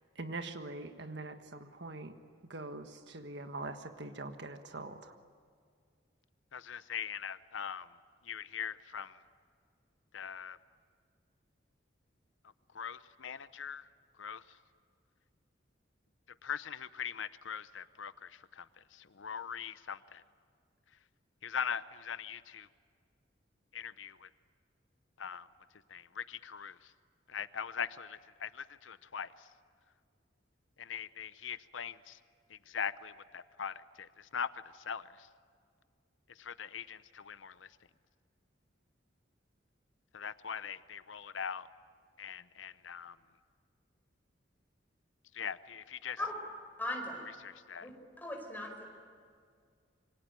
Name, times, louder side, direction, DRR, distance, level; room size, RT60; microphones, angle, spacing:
voice 1, 0.2-2.1 2.4-5.2, right 2 dB, 65° right, 8 dB, 1.5 m, -43 dB
voice 2, 6.5-7.9 8.2-9.2 10.1-10.6 12.7-13.9 14.2-14.6 16.4-20.2 21.4-22.7 23.7-24.3 25.2-25.5 25.9-26.9 27.3-29.5 30.8-32.2 32.5-35.3 36.3-37.8 40.1-41.7 42.2-43.2 45.3-46.2 47.4-47.9, left 7 dB, 90° left, 15 dB, 0.7 m, -41 dB
voice 3, 46.8-47.2 47.8-47.9 48.2-48.8, left 1 dB, 10° left, 2 dB, 5.0 m, -38 dB
27.0 x 24.0 x 9.1 m, 2.1 s
head